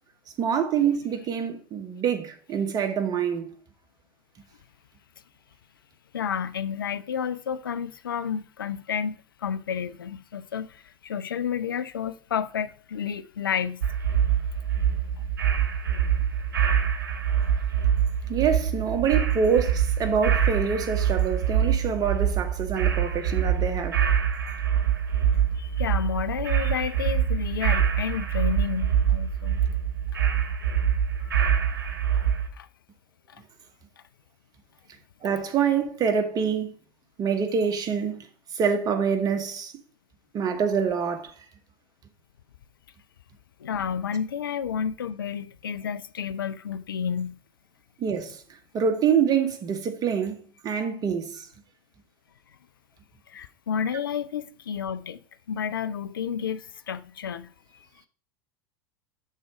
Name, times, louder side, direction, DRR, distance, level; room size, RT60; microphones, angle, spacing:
voice 1, 0.4-3.5 18.3-24.0 35.2-36.7 37.2-38.3 38.5-39.7 40.3-41.3 48.0-48.4 48.7-51.5, right 7 dB, 35° right, 1.1 m, -26 dB
voice 2, 6.1-13.8 25.6-29.6 31.2-31.3 32.1-32.2 32.6-32.7 33.3-33.4 43.6-47.4 53.3-55.2 55.5-57.5, left 7 dB, 85° left, 0.4 m, -31 dB
sound 1, 13.8-32.5, right 9 dB, 80° right, 0.9 m, -25 dB
6.4 x 3.9 x 4.8 m
hypercardioid pair, 85°, 11 cm